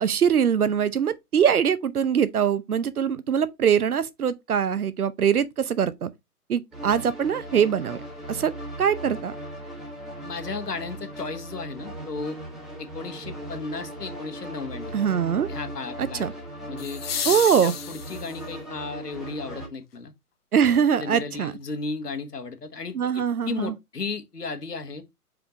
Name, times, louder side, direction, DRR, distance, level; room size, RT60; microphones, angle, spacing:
voice 1, 0.0-6.1 6.5-8.0 8.3-8.5 8.8-9.3 14.9-15.5 16.0-16.3 17.2-17.7 20.5-21.5 22.9-23.8, right 8 dB, 70° right, 0.9 m, -23 dB
sound 1, 6.7-19.7, right 1 dB, ahead, 1.1 m, -38 dB
voice 2, 10.2-12.4 12.8-14.9 15.5-16.3 16.7-17.0 17.6-20.1 20.7-25.0, left 4 dB, 80° left, 1.5 m, -34 dB
sound 2, 11.1-11.2 16.8-18.6 20.8-20.9, left 8 dB, 40° left, 1.0 m, -32 dB
5.0 x 4.9 x 3.9 m
figure-of-eight pair, 135°, 47 cm